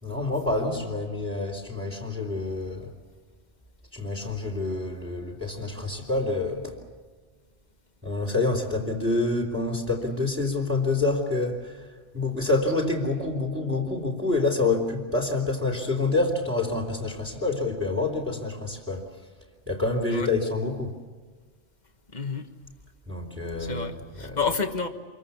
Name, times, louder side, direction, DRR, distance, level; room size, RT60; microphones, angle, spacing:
voice 1, 0.0-2.9 3.9-6.8 8.0-19.1 19.7-20.9 23.1-24.4, left 3 dB, 10° right, -2 dB, 3.3 m, -27 dB
voice 2, 22.1-22.5 23.6-24.9, left 5 dB, 35° left, 7 dB, 1.6 m, -29 dB
27.5 x 23.0 x 7.1 m, 1.5 s
omnidirectional pair, 1.3 m